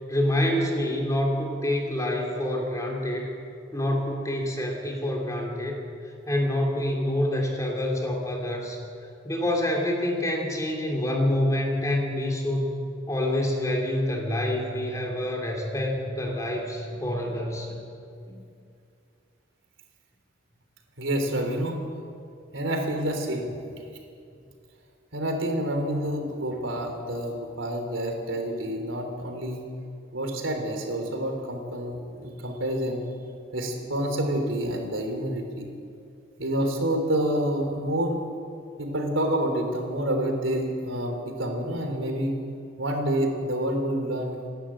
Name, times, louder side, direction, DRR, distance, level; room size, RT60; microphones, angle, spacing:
voice 1, 0.1-3.3 3.7-5.8 6.3-8.8 9.2-12.8 13.1-18.0 18.3-18.4, left 1 dB, 15° left, 0 dB, 3.4 m, -27 dB
voice 2, 21.0-21.8 22.5-23.8 25.1-29.6 30.1-33.1 33.5-35.7 36.4-38.2 38.8-42.4 42.8-44.4, right 1 dB, 85° right, 3 dB, 3.7 m, -28 dB
29.5 x 11.5 x 8.8 m, 2.4 s
head